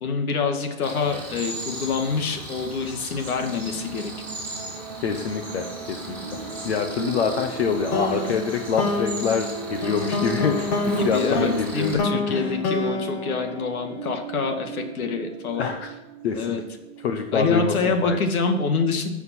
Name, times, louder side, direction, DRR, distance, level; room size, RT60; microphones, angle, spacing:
voice 1, 0.0-4.1 11.0-15.7 16.3-16.6 17.3-19.1, left 4 dB, 85° left, 5 dB, 2.2 m, -26 dB
Cricket, 0.8-11.9, right 1 dB, 5° left, 2.1 m, -35 dB
sound 1, 3.4-18.2, right 4 dB, 20° right, 0.8 m, -38 dB
voice 2, 5.0-6.2 6.6-12.5 15.5-15.9 16.2-16.6 17.0-18.2, left 6 dB, 50° left, 6 dB, 1.0 m, -26 dB
sound 2, 7.9-14.3, left 2 dB, 25° left, 1.0 m, -28 dB
14.0 x 5.9 x 6.1 m, 1.0 s
hypercardioid pair, 175°, 42 cm